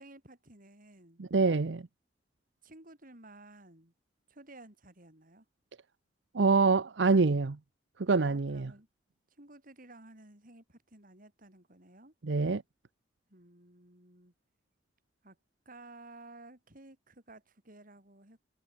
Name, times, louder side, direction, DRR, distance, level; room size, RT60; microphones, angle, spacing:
voice 1, 0.0-1.2 2.6-3.9 4.3-5.4 8.1-8.9 9.4-12.1 13.3-14.3 15.2-15.4 15.6-18.4, right 2 dB, 50° right, 6.8 m, -54 dB
voice 2, 1.2-1.9 6.3-7.6 8.0-8.7 12.2-12.6, right 4 dB, 80° right, 0.7 m, -26 dB
head